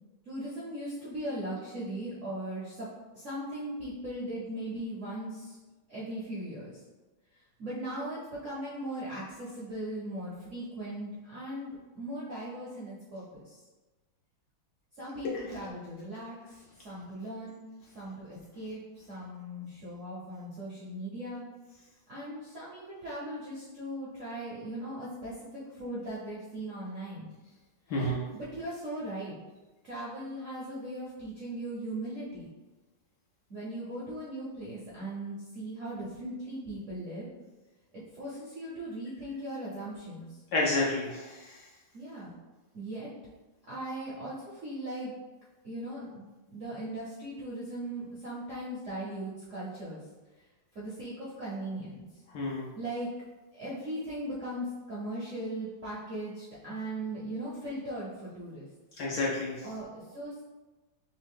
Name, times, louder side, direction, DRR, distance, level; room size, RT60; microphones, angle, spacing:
voice 1, 0.3-2.9 3.1-5.6 5.9-6.7 7.6-13.6 15.0-16.4 16.8-17.7 17.9-21.5 22.1-27.3 28.3-29.3 29.8-32.5 33.5-37.3 37.9-40.2 41.9-42.3 42.7-43.1 43.7-45.1 45.6-50.0 50.7-52.1 52.8-53.1 53.6-58.7 59.6-60.4, right 1 dB, 60° right, -8 dB, 0.8 m, -38 dB
voice 2, 27.9-28.3 40.5-41.3 52.3-52.6 59.0-59.5, left 2 dB, 70° left, -4 dB, 1.0 m, -29 dB
3.5 x 2.9 x 3.5 m, 1.2 s
omnidirectional pair, 2.3 m